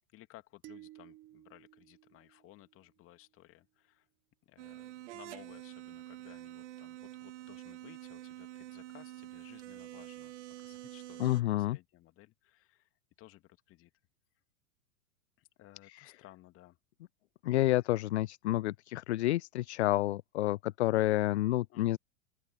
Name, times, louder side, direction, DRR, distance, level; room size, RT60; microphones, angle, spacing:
voice 1, 0.1-4.1 4.5-10.3 10.6-12.9 13.2-13.9 15.4-16.8 21.7-21.9, left 16 dB, 30° left, 2.6 m, -58 dB
sound 1, 0.6-3.1, right 16 dB, 25° right, 1.2 m, -55 dB
sound 2, 4.6-11.4, right 15 dB, 55° right, 4.2 m, -47 dB
voice 2, 11.2-11.8 15.9-16.1 17.4-22.0, left 16 dB, 50° left, 0.6 m, -29 dB
open air
figure-of-eight pair, 100°, 43 cm